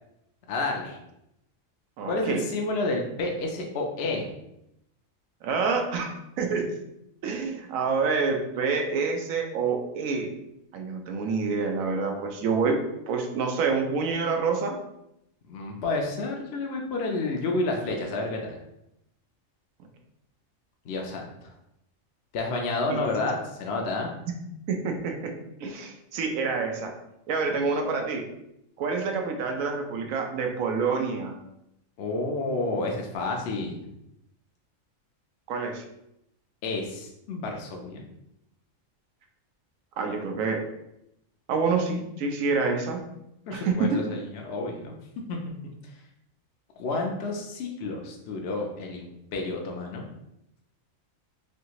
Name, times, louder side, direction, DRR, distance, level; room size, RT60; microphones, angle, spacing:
voice 1, 0.5-1.0 2.1-4.3 15.5-18.6 20.9-21.5 22.3-24.1 32.0-33.8 36.6-38.0 43.5-45.0 45.3-45.4 46.8-50.0, left 2 dB, 65° left, 1 dB, 0.7 m, -30 dB
voice 2, 2.0-2.4 5.4-6.7 7.2-10.3 10.7-12.8 13.1-14.8 22.9-23.0 24.3-24.4 24.7-25.3 25.6-26.9 27.3-28.3 28.8-31.3 35.5-35.8 40.0-40.6 41.5-43.0 43.5-44.0, right 4 dB, 85° right, 3 dB, 1.0 m, -27 dB
3.2 x 2.7 x 2.9 m, 0.82 s
omnidirectional pair, 1.4 m